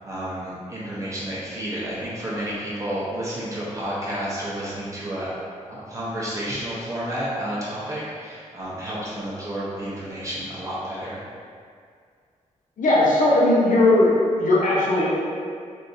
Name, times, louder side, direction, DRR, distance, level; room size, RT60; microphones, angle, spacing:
voice 1, 0.0-5.3 5.7-11.2, right 1 dB, 25° right, -8 dB, 0.8 m, -31 dB
voice 2, 12.8-14.1 14.4-15.1, left 2 dB, 85° left, -5 dB, 0.7 m, -18 dB
3.6 x 2.7 x 2.7 m, 2.2 s
wide cardioid pair, 135°, 13 cm